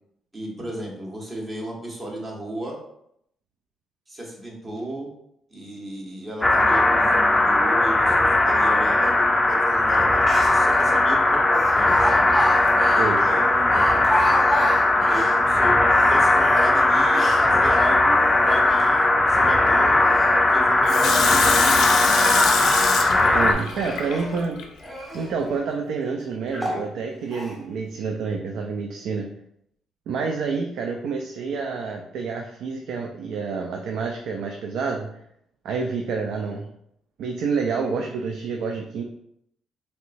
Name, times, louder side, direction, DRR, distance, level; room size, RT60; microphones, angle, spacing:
voice 1, 0.3-2.8 4.1-5.1 5.5-12.3 13.3-14.0 15.1-20.1 20.5-21.7, right 1 dB, 30° right, -2 dB, 1.2 m, -34 dB
sound 1, 6.4-23.5, left 2 dB, 15° left, 0.4 m, -18 dB
Speech, 9.9-10.0 10.2-10.8 11.5-15.4 15.8-17.5 18.0-18.9 19.8-20.3 21.0-23.1 23.6-24.4 24.8-25.3 25.9-26.0 26.5-26.8 27.3-27.6, equal, 5° right, 1.5 m, -30 dB
voice 2, 13.0-13.4 23.2-24.6 25.1-29.3 30.1-35.1 35.6-36.7 37.2-39.0, right 5 dB, 75° right, 2 dB, 0.3 m, -28 dB
Water tap faucet / Sink (filling or washing), 20.9-24.6 25.1-25.2, left 5 dB, 75° left, 0.5 m, -25 dB
3.2 x 2.8 x 2.6 m, 0.74 s
supercardioid pair, 70°, 0 cm